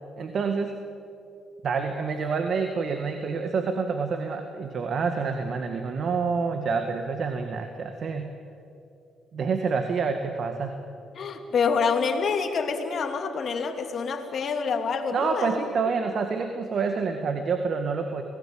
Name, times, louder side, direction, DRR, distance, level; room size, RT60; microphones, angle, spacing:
voice 1, 0.2-0.8 1.6-8.3 9.3-10.7 15.1-18.2, right 5 dB, 55° right, 6 dB, 1.9 m, -27 dB
voice 2, 11.1-15.5, left 5 dB, 55° left, 5 dB, 3.0 m, -27 dB
27.0 x 18.5 x 8.8 m, 2.6 s
cardioid pair, 90°, 0 cm